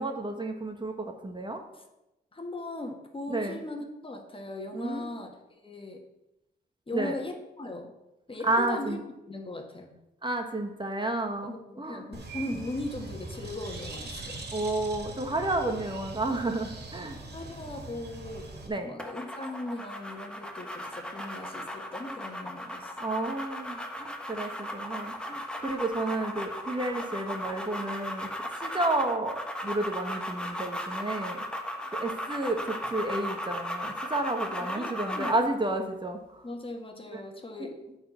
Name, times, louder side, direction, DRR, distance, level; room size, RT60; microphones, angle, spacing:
voice 1, 0.0-1.6 3.3-3.6 4.7-5.1 6.9-7.2 8.4-9.0 10.2-12.0 14.5-17.2 18.7-18.9 23.0-28.3 28.6-31.4 32.0-36.4 37.1-37.2 37.6-37.7, right 2 dB, 25° right, 4 dB, 1.3 m, -31 dB
voice 2, 2.3-6.0 6.9-7.9 8.3-9.0 9.3-10.0 11.4-14.4 17.3-18.5 18.8-22.9 34.6-35.3 36.4-37.8, left 2 dB, 30° left, 3 dB, 1.6 m, -38 dB
Bird, 12.1-18.7, right 2 dB, 65° right, 2.4 m, -41 dB
sound 1, 19.0-35.5, equal, 5° left, 1.3 m, -36 dB
9.3 x 4.5 x 7.1 m, 0.95 s
cardioid pair, 65°, 18 cm